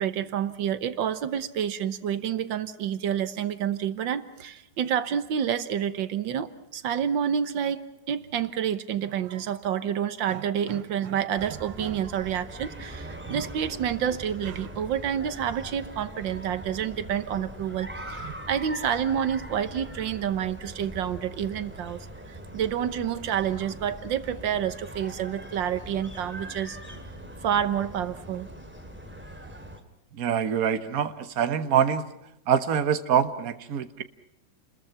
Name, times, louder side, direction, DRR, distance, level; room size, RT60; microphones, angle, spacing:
voice 1, 0.0-22.0 22.3-26.8 27.4-28.5, right 9 dB, 85° right, 12 dB, 1.8 m, -29 dB
sound 1, 11.4-29.8, right 1 dB, 5° right, 2.5 m, -42 dB
voice 2, 30.1-32.0 32.5-34.0, right 8 dB, 55° right, 10 dB, 1.6 m, -25 dB
29.5 x 21.5 x 5.8 m, 0.83 s
omnidirectional pair, 2.0 m